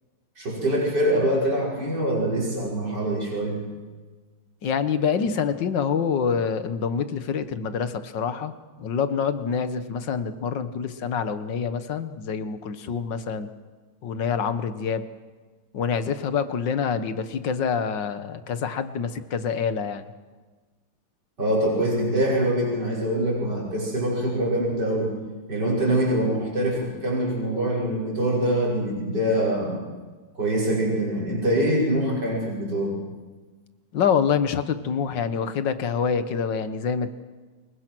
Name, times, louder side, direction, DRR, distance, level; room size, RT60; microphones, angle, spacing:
voice 1, 0.4-3.6 21.4-25.1 25.5-29.8 30.4-33.0, right 1 dB, 55° right, -4 dB, 6.3 m, -24 dB
voice 2, 4.6-8.5 8.8-13.5 14.0-15.1 15.7-20.1 33.9-37.1, left 6 dB, 70° left, 11 dB, 1.8 m, -26 dB
29.0 x 23.0 x 6.1 m, 1.4 s
omnidirectional pair, 2.1 m